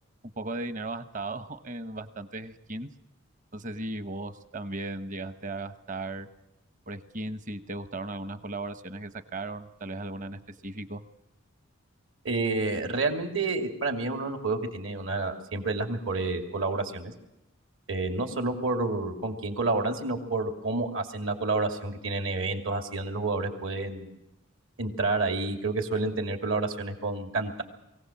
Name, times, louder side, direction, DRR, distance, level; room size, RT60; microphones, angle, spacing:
voice 1, 0.4-2.9 3.5-6.3 6.9-11.0, right 2 dB, 40° right, 11 dB, 1.0 m, -36 dB
voice 2, 12.2-17.1 17.9-24.1 24.8-27.6, right 3 dB, 70° right, 5 dB, 2.7 m, -29 dB
22.5 x 17.0 x 7.3 m, 0.91 s
head